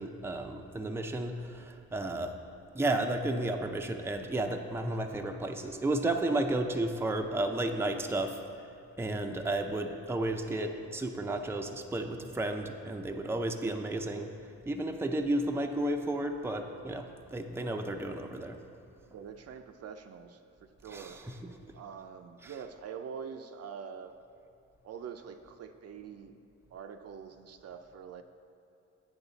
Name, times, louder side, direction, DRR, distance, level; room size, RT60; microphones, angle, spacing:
voice 1, 0.0-2.3 2.7-8.7 9.0-14.3 14.7-18.6 20.8-21.6 22.4-22.7, right 1 dB, 10° right, 4 dB, 0.5 m, -33 dB
voice 2, 19.1-20.4 20.8-21.2 21.7-24.1 24.8-26.3 26.7-28.2, right 7 dB, 55° right, 7 dB, 0.5 m, -44 dB
8.8 x 6.4 x 4.0 m, 2.6 s
cardioid pair, 90°, 30 cm